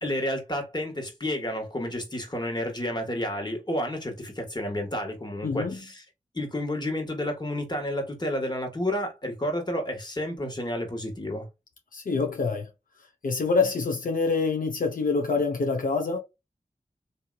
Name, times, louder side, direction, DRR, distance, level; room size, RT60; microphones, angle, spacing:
voice 1, 0.0-6.0 6.3-11.5, left 1 dB, 30° left, 1.5 m, -30 dB
voice 2, 5.4-5.9 11.9-12.7 13.2-16.2, left 4 dB, 80° left, 0.7 m, -26 dB
2.9 x 2.8 x 2.3 m
cardioid pair, 45°, 14 cm